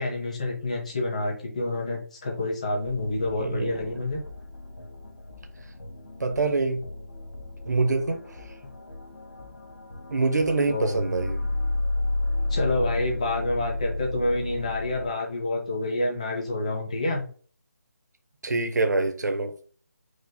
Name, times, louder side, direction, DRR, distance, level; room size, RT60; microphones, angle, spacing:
voice 1, 0.0-4.2 10.7-11.1 12.5-17.2, left 2 dB, 25° left, 1.0 m, -28 dB
sound 1, 2.8-15.1, left 2 dB, 85° left, 1.8 m, -33 dB
voice 2, 3.4-3.9 6.2-6.8 7.7-8.5 10.1-11.5 18.4-19.5, right 3 dB, 85° right, 0.8 m, -25 dB
4.8 x 2.2 x 4.1 m
hypercardioid pair, 180°, 9 cm